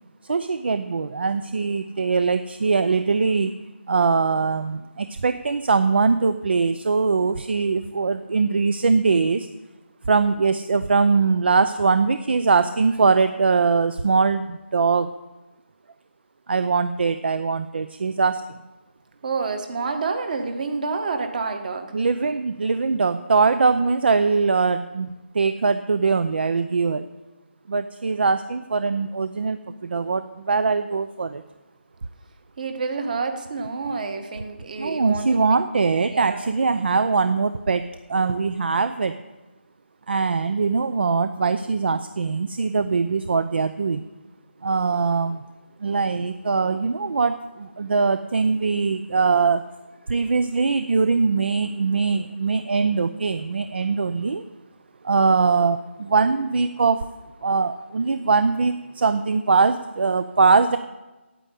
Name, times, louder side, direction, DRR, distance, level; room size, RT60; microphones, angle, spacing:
voice 1, 0.3-3.5 3.9-9.5 10.1-15.1 16.5-18.6 21.9-27.1 27.7-31.4 34.8-37.8 38.1-39.2 40.1-44.0 44.6-45.4 45.8-49.6 50.1-54.4 55.0-57.1 57.4-60.8, right 4 dB, 60° right, 11 dB, 0.6 m, -22 dB
voice 2, 19.2-21.9 32.6-35.6 36.0-36.5, right 4 dB, 40° right, 6 dB, 1.6 m, -28 dB
9.2 x 9.0 x 8.3 m, 1.1 s
figure-of-eight pair, 165°, 7 cm